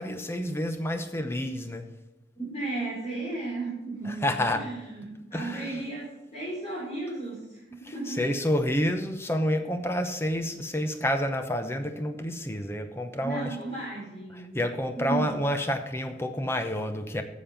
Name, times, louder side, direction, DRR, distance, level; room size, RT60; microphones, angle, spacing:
voice 1, 0.0-1.9 4.1-4.6 5.3-5.8 8.1-13.6 14.3-17.2, equal, 15° left, 7 dB, 0.8 m, -29 dB
voice 2, 2.4-8.3 13.2-14.6 15.0-15.3, right 3 dB, 35° left, -8 dB, 3.5 m, -35 dB
9.0 x 7.3 x 5.9 m, 1.0 s
head